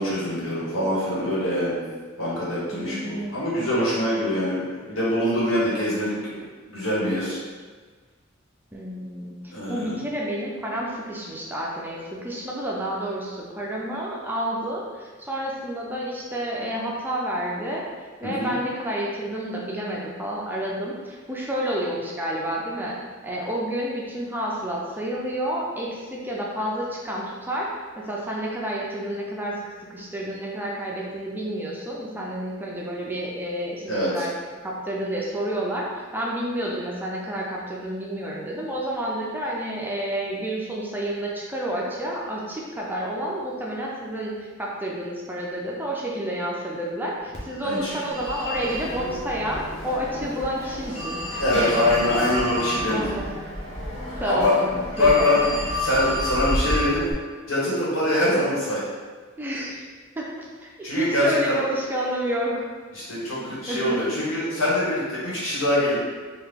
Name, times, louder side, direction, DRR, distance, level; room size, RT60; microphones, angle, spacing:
voice 1, 0.0-1.8 2.2-6.4 6.7-7.4 9.5-9.9 18.2-18.5 33.9-34.2 47.6-48.2 51.4-53.0 54.2-54.6 55.0-57.0 57.5-58.8 60.8-61.6 62.9-66.0, left 1 dB, 75° left, -8 dB, 1.4 m, -24 dB
voice 2, 2.7-3.5 8.7-17.8 18.2-22.9 23.2-27.7 28.0-29.6 29.9-34.3 34.6-35.9 36.1-44.3 44.6-51.4 52.9-53.2 54.2-55.4 59.4-59.8 60.2-62.7 63.4-64.0, right 1 dB, 10° right, -4 dB, 0.4 m, -30 dB
Telephone, 47.3-57.1, left 1 dB, 30° left, 0.8 m, -30 dB
3.7 x 2.4 x 3.4 m, 1.5 s
head